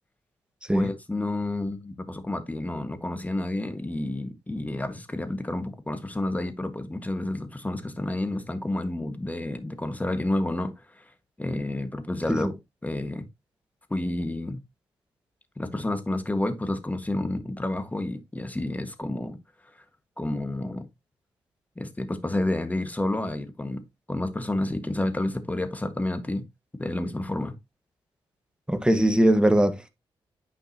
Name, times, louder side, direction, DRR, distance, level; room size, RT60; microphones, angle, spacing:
voice 1, 0.7-11.1 11.4-12.6 12.8-13.3 13.9-14.6 15.6-19.4 20.2-20.9 21.8-23.8 24.1-26.4 26.8-27.5, left 1 dB, 15° left, 1.6 m, -30 dB
voice 2, 28.7-29.9, right 1 dB, 10° right, 1.5 m, -21 dB
9.3 x 5.3 x 2.9 m
cardioid pair, 65°, 10 cm